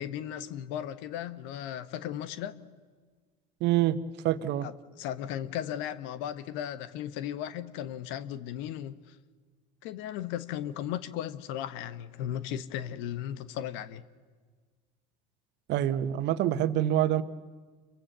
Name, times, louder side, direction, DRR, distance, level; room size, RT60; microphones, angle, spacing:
voice 1, 0.0-2.5 4.6-9.1 9.8-14.0, left 10 dB, 60° left, 1.3 m, -36 dB
voice 2, 3.6-4.0 4.2-4.7 15.7-17.2, right 12 dB, 55° right, 1.4 m, -26 dB
29.5 x 23.5 x 6.9 m
hypercardioid pair, 80°, 21 cm